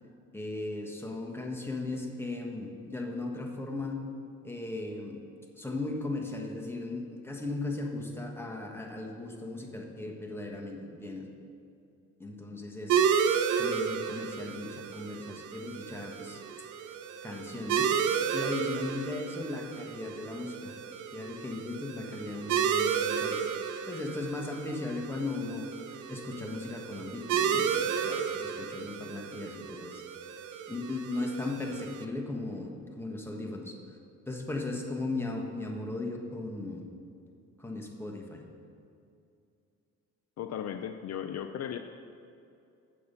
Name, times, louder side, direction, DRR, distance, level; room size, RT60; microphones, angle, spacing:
voice 1, 0.3-4.0 4.4-5.2 5.5-11.3 12.2-16.4 17.2-17.9 18.3-20.7 21.1-23.4 23.9-30.0 30.7-32.7 33.0-33.8 34.3-36.9 37.6-38.4, left 2 dB, 10° left, 0 dB, 1.3 m, -37 dB
sound 1, 12.9-32.0, right 7 dB, 90° right, 0.6 m, -32 dB
voice 2, 40.4-41.8, left 9 dB, 60° left, 7 dB, 0.5 m, -36 dB
8.6 x 6.7 x 5.5 m, 2.6 s
cardioid pair, 90°, 30 cm